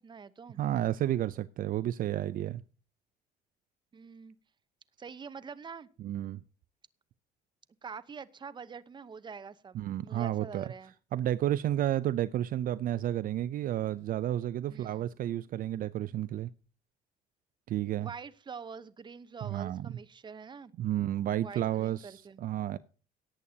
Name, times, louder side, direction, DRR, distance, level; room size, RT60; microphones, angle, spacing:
voice 1, 0.0-0.6 3.9-4.4 5.0-5.9 7.8-10.9 14.7-15.1 18.0-20.7 21.4-22.4, right 5 dB, 25° right, 0.8 m, -45 dB
voice 2, 0.6-2.6 6.0-6.4 9.7-10.7 11.1-16.5 17.7-18.1 19.4-19.9 20.8-22.8, right 12 dB, 55° right, 0.5 m, -31 dB
17.5 x 8.5 x 2.8 m
cardioid pair, 110°, 17 cm